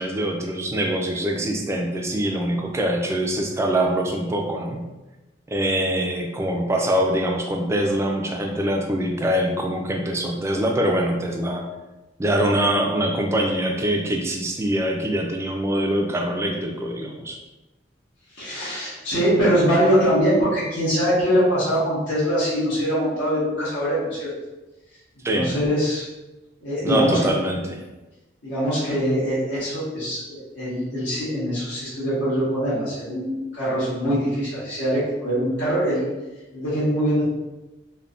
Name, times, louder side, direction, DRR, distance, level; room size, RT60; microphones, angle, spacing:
voice 1, 0.0-4.8 5.5-11.7 12.2-17.4 25.2-25.5 26.8-27.8, right 1 dB, 15° right, 1 dB, 0.3 m, -24 dB
voice 2, 18.4-24.3 25.3-26.0 26.6-27.2 28.4-36.1 36.5-37.3, equal, 80° left, -12 dB, 1.2 m, -23 dB
3.3 x 2.1 x 2.5 m, 1.1 s
head